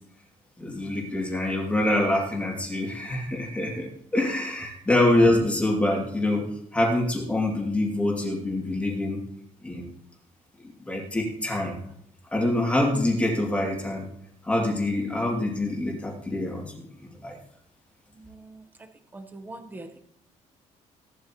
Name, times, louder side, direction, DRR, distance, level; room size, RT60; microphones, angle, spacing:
voice 1, 0.6-9.2 9.6-9.9 10.6-11.8 12.3-14.1 14.4-17.4, left 1 dB, 10° left, -1 dB, 2.6 m, -25 dB
voice 2, 18.1-18.6 19.1-20.0, right 2 dB, 15° right, 7 dB, 1.1 m, -42 dB
17.0 x 12.0 x 3.1 m, 0.72 s
cardioid pair, 175°, 13 cm